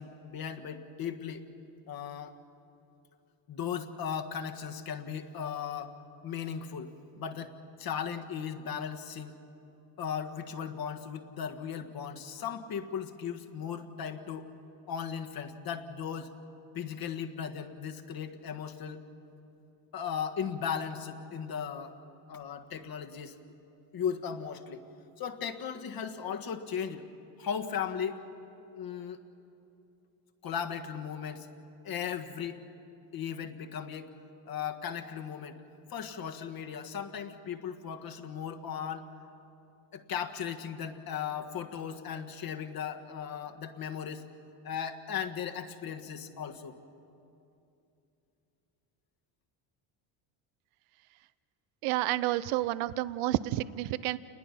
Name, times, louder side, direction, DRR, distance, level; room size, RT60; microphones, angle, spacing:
voice 1, 0.0-1.5 1.9-2.4 3.5-6.0 6.2-7.5 7.8-9.3 10.0-14.5 14.9-16.3 16.7-19.0 19.9-22.0 22.3-23.4 23.9-24.8 25.2-27.1 27.4-28.2 28.7-29.2 30.4-31.5 31.8-32.6 33.1-34.1 34.5-35.6 35.9-39.1 39.9-44.2 44.6-46.8, left 7 dB, 45° left, 6 dB, 1.6 m, -37 dB
voice 2, 51.8-54.2, right 16 dB, 80° right, 16 dB, 0.7 m, -30 dB
28.5 x 20.5 x 5.8 m, 2.8 s
cardioid pair, 105°, 49 cm